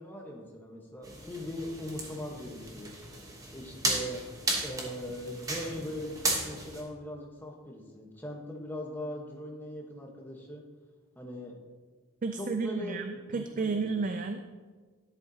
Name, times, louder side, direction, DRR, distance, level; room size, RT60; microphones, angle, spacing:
voice 1, 0.0-2.9 3.5-4.2 4.6-10.6 11.2-11.6 12.3-14.0, left 1 dB, 10° left, 0 dB, 1.1 m, -40 dB
sound 1, 1.0-6.8, right 2 dB, 15° right, 1.1 m, -35 dB
voice 2, 12.2-14.5, right 4 dB, 35° right, 7 dB, 0.4 m, -32 dB
12.5 x 10.5 x 2.8 m, 1.5 s
head